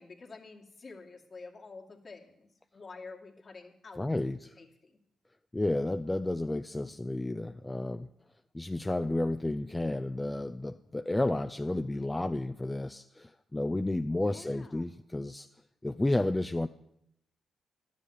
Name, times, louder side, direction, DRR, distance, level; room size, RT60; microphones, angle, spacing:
voice 1, 0.0-4.0 4.6-5.0 14.2-14.9, left 4 dB, 45° left, 0 dB, 2.4 m, -49 dB
voice 2, 4.0-4.6 5.5-8.1 8.5-15.5 15.8-16.7, left 2 dB, 15° left, 9 dB, 0.5 m, -31 dB
12.0 x 7.4 x 8.8 m, 0.78 s
supercardioid pair, 50°, 0 cm